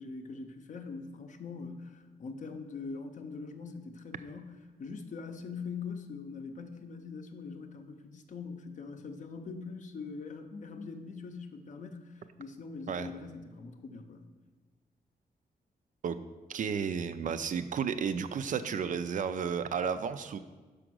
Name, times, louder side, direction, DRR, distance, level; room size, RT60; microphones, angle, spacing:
voice 1, 0.0-14.3, left 4 dB, 50° left, 6 dB, 0.6 m, -43 dB
voice 2, 16.5-20.4, right 7 dB, 55° right, 12 dB, 0.4 m, -32 dB
6.0 x 5.0 x 6.1 m, 1.3 s
wide cardioid pair, 175°, 16 cm